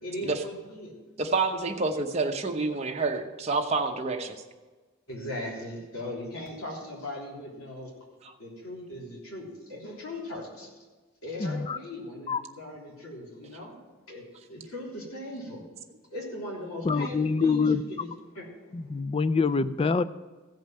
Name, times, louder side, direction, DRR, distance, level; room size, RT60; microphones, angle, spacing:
voice 1, 0.0-0.9 5.1-7.9 8.4-10.7 11.2-13.8 14.1-15.6 16.1-18.1 18.3-18.4, left 1 dB, 85° left, -3 dB, 3.5 m, -39 dB
voice 2, 1.2-4.4 8.2-8.3, right 3 dB, 30° right, 3 dB, 0.9 m, -28 dB
voice 3, 11.4-11.8 12.3-12.4 16.8-17.8 18.7-20.0, left 4 dB, 25° left, 14 dB, 0.3 m, -25 dB
15.0 x 5.3 x 7.5 m, 1.3 s
head